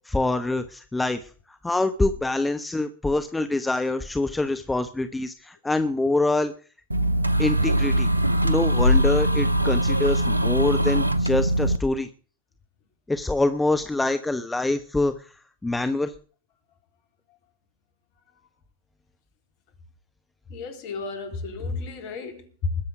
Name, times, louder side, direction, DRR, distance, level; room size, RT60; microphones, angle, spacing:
voice 1, 0.1-1.2 1.5-6.5 7.4-8.1 8.4-12.1 13.1-15.1 15.6-16.1, left 2 dB, 10° left, 1.1 m, -25 dB
sound 1, 6.9-11.8, equal, 85° right, 0.9 m, -21 dB
voice 2, 20.5-22.9, left 4 dB, 45° left, 3.9 m, -32 dB
21.0 x 7.7 x 5.0 m
figure-of-eight pair, 90°, 0 cm